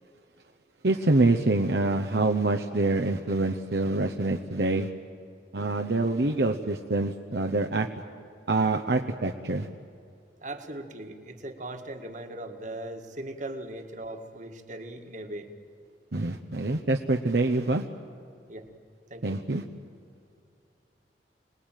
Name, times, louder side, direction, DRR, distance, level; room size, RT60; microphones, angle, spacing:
voice 1, 0.8-4.9 5.5-7.9 8.5-9.7 16.1-17.9 19.2-19.6, right 2 dB, 65° right, 4 dB, 0.9 m, -25 dB
voice 2, 10.4-15.5 18.5-18.7 19.1-19.4, right 1 dB, 45° right, 6 dB, 1.9 m, -39 dB
26.5 x 19.5 x 9.1 m, 2.4 s
head